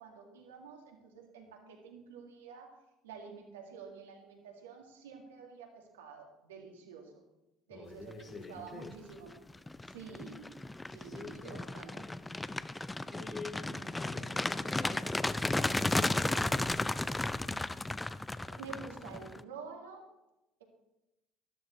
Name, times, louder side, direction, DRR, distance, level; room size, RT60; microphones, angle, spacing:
voice 1, 0.0-2.8 3.0-7.2 7.7-9.3 9.9-10.6 10.9-12.1 18.6-20.1, right 5 dB, 80° right, 1 dB, 2.1 m, -49 dB
voice 2, 7.7-9.0 11.0-11.6 13.1-17.0, left 3 dB, 35° left, 1 dB, 2.2 m, -47 dB
sound 1, 8.6-8.9 9.3-19.4, left 2 dB, 10° left, 0.5 m, -34 dB
13.0 x 12.5 x 3.2 m, 0.95 s
hypercardioid pair, 65°, 0 cm